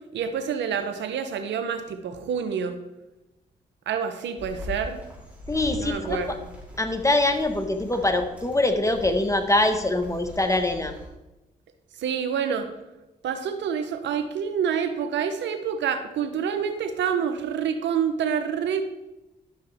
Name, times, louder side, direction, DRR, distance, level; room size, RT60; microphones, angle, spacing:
voice 1, 0.1-2.8 3.9-5.0 5.8-6.5 12.0-12.7 13.2-18.8, right 7 dB, 80° right, 8 dB, 0.8 m, -27 dB
sound 1, 4.4-11.1, left 1 dB, 10° right, 3.5 m, -41 dB
voice 2, 5.5-6.2 6.8-10.9, left 2 dB, 15° left, 6 dB, 1.3 m, -23 dB
11.0 x 6.6 x 3.5 m, 1.0 s
supercardioid pair, 45°, 18 cm